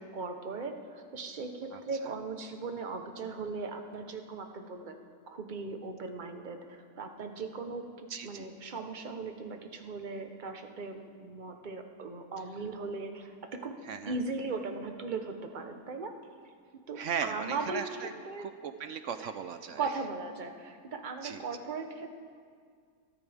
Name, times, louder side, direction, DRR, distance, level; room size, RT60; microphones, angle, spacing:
voice 1, 0.0-5.0 5.3-13.7 14.1-16.1 16.9-18.5 19.2-19.3 19.8-22.1, right 4 dB, 35° right, 5 dB, 1.0 m, -38 dB
voice 2, 1.7-2.1 8.1-8.5 13.9-14.2 17.0-18.1 18.4-19.8 21.2-21.4, right 7 dB, 65° right, 9 dB, 0.8 m, -37 dB
23.5 x 13.5 x 3.5 m, 2.1 s
omnidirectional pair, 1.8 m